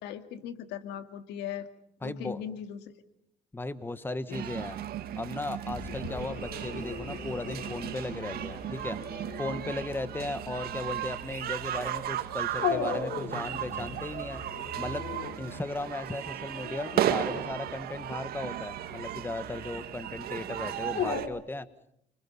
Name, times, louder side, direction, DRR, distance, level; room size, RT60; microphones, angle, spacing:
voice 1, 0.0-1.7 2.0-3.0 4.3-4.4, left 9 dB, 85° left, 9 dB, 2.1 m, -39 dB
voice 2, 2.0-2.5 3.5-4.8 5.2-9.0 9.4-14.4 14.8-15.0 15.4-21.7, left 2 dB, 15° left, 12 dB, 1.5 m, -36 dB
sound 1, 4.3-21.3, right 11 dB, 65° right, 2.1 m, -35 dB
Dog, 5.7-21.2, left 6 dB, 60° left, 4.7 m, -39 dB
29.5 x 25.5 x 5.5 m, 0.72 s
cardioid pair, 110°, 17 cm